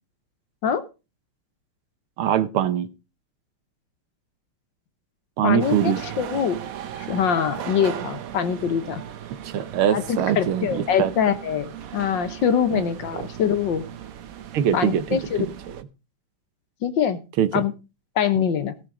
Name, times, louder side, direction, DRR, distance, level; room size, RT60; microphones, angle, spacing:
voice 1, 2.2-2.9 5.4-6.0 9.4-11.1 12.7-12.8 13.1-13.3 14.5-15.8 17.4-17.6 18.4-18.5, right 10 dB, 80° right, 13 dB, 1.8 m, -23 dB
voice 2, 5.4-6.6 7.0-9.0 9.9-13.8 14.7-15.5 16.8-17.2 17.5-17.7 18.2-18.7, left 8 dB, 65° left, 11 dB, 1.6 m, -24 dB
sound 1, 5.6-15.8, right 10 dB, 60° right, 0.9 m, -37 dB
17.0 x 6.3 x 5.0 m, 0.30 s
omnidirectional pair, 2.4 m